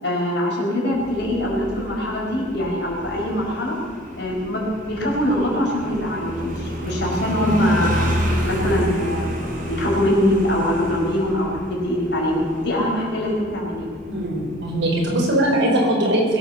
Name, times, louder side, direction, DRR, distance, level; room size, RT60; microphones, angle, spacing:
voice 1, 0.0-3.8 4.2-8.1 8.4-9.3 9.6-13.9, left 1 dB, 55° left, -2 dB, 4.8 m, -23 dB
Motorcycle, 0.9-15.2, equal, 45° right, 4.0 m, -30 dB
voice 2, 14.0-16.4, right 1 dB, 65° right, -2 dB, 5.1 m, -20 dB
21.5 x 9.0 x 7.2 m, 2.1 s
head